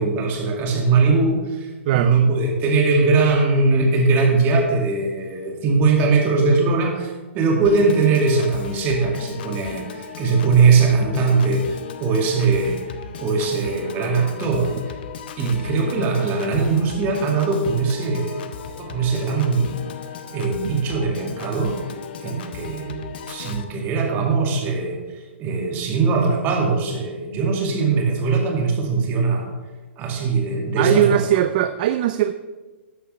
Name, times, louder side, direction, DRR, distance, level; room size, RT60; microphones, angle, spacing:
voice 1, 0.0-12.8 13.2-14.7 15.4-18.5 18.8-19.8 20.3-21.8 22.2-25.0 25.4-29.5 30.0-31.2, right 4 dB, 30° right, 1 dB, 2.1 m, -20 dB
voice 2, 1.9-2.2 30.8-32.3, right 12 dB, 45° right, 11 dB, 0.4 m, -19 dB
Piano / Organ, 7.6-23.6, left 7 dB, 55° left, 0.9 m, -36 dB
13.0 x 9.2 x 3.3 m, 1.3 s
figure-of-eight pair, 120°, 7 cm